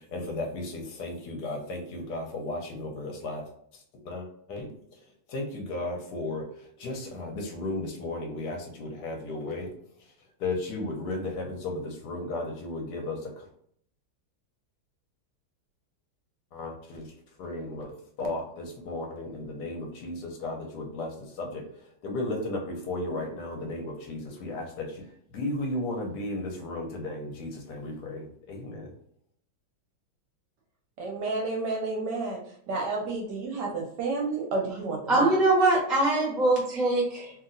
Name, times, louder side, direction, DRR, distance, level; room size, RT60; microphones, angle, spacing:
voice 1, 0.0-3.4 4.0-4.7 5.3-6.4 6.8-9.7 10.4-13.4 16.5-17.1 17.4-21.6 22.0-25.0 25.3-28.9, left 2 dB, 65° left, 1 dB, 1.1 m, -34 dB
voice 2, 31.0-32.4 32.7-35.4, right 3 dB, 70° right, -1 dB, 1.1 m, -30 dB
voice 3, 35.1-37.3, right 2 dB, ahead, -4 dB, 0.5 m, -23 dB
2.9 x 2.8 x 2.5 m, 0.67 s
omnidirectional pair, 2.3 m